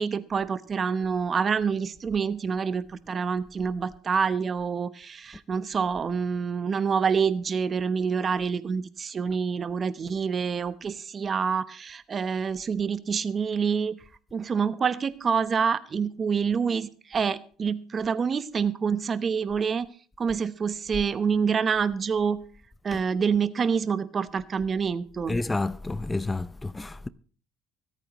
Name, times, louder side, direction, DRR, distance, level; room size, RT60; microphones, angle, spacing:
voice 1, 0.0-14.0 14.3-19.9 20.2-22.4 22.8-25.4, right 6 dB, 35° right, 1.0 m, -27 dB
voice 2, 25.3-27.1, left 2 dB, 15° left, 0.5 m, -30 dB
24.5 x 8.9 x 3.1 m
supercardioid pair, 90°, 0 cm